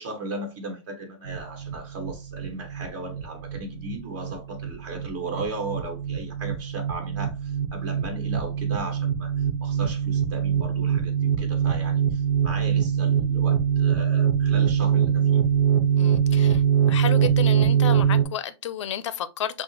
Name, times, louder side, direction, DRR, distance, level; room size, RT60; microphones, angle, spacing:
voice 1, 0.0-15.4, right 2 dB, 45° right, 1.7 m, -36 dB
sound 1, 1.3-18.2, right 8 dB, 85° right, 1.0 m, -23 dB
voice 2, 16.0-16.6 16.9-19.6, left 8 dB, 75° left, 0.5 m, -31 dB
5.9 x 2.1 x 3.0 m
hypercardioid pair, 145°, 16 cm